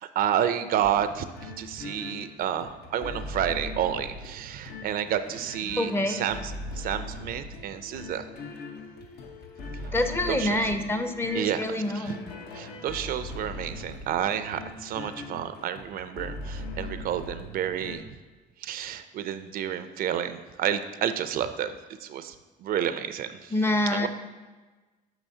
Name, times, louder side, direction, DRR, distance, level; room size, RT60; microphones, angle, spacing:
voice 1, 0.0-8.3 9.8-9.9 10.3-10.7 11.3-12.2 12.5-18.0 18.6-21.7 22.0-22.3 22.6-23.5 23.9-24.1, right 9 dB, 60° right, 11 dB, 0.4 m, -30 dB
sound 1, 0.8-18.0, left 2 dB, 75° left, 0.9 m, -40 dB
voice 2, 5.8-6.2 9.9-12.2 23.5-24.1, left 1 dB, 15° left, 7 dB, 0.5 m, -26 dB
8.8 x 6.0 x 2.7 m, 1.3 s
cardioid pair, 110°, 17 cm